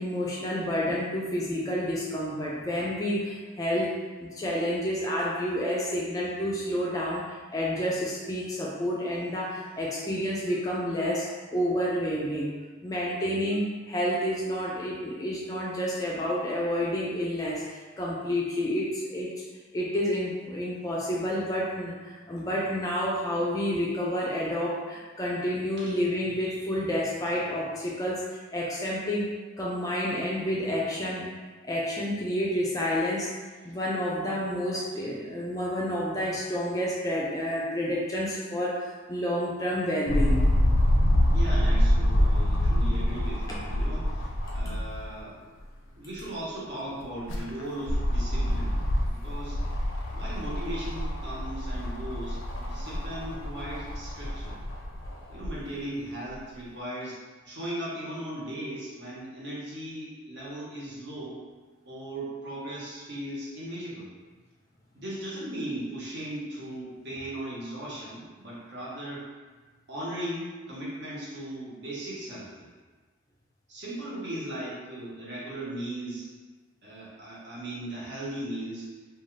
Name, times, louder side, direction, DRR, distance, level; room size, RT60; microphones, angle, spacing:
voice 1, 0.0-12.5 12.8-19.4 19.7-21.9 22.3-29.3 29.6-31.3 31.6-33.3 33.6-40.5, equal, 20° left, -4 dB, 0.3 m, -29 dB
sound 1, 40.1-45.1 45.6-45.7 47.0-55.6 56.3-56.4, left 1 dB, 80° left, 0.4 m, -26 dB
voice 2, 41.3-45.4 45.9-49.6 50.1-54.6 55.3-57.2 57.5-61.4 61.8-64.1 64.9-69.2 69.9-72.7 73.7-76.3 76.8-78.9, right 1 dB, 55° right, -7 dB, 0.9 m, -37 dB
2.7 x 2.3 x 3.1 m, 1.4 s
head